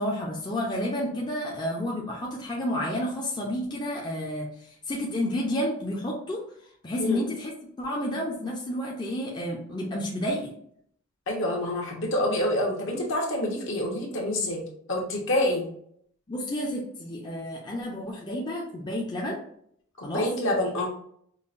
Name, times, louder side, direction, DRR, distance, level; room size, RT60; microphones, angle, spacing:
voice 1, 0.0-6.4 6.8-7.5 7.8-10.5 16.3-19.4 20.0-20.3, left 1 dB, 20° left, -3 dB, 0.5 m, -30 dB
voice 2, 11.3-14.6 14.9-15.6 20.0-20.9, left 1 dB, 60° left, -1 dB, 1.1 m, -27 dB
5.5 x 2.2 x 2.5 m, 0.67 s
head